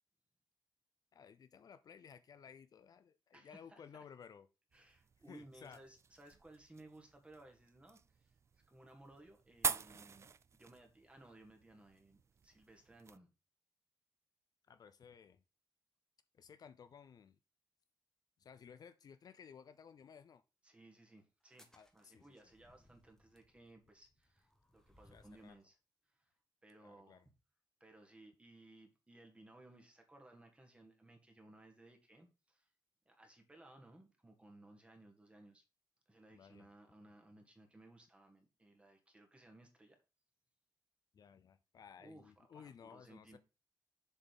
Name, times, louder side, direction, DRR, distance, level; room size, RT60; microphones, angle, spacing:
voice 1, 1.1-4.5 5.3-5.8 14.7-15.4 16.3-17.4 18.4-20.4 21.7-22.3 25.1-25.6 26.8-27.3 36.3-36.7 41.1-43.4, left 7 dB, 60° left, 0.5 m, -57 dB
voice 2, 3.3-4.1 4.7-8.3 8.7-10.3 10.5-13.3 20.6-25.8 26.1-26.3 26.6-27.2 27.8-32.7 33.1-35.6 36.1-40.0 42.0-43.4, right 2 dB, 15° right, 1.8 m, -60 dB
sound 1, 4.7-13.2, right 6 dB, 40° right, 0.4 m, -46 dB
sound 2, 21.4-25.6, left 1 dB, 5° left, 1.2 m, -68 dB
7.1 x 4.2 x 5.2 m
wide cardioid pair, 130°, 7 cm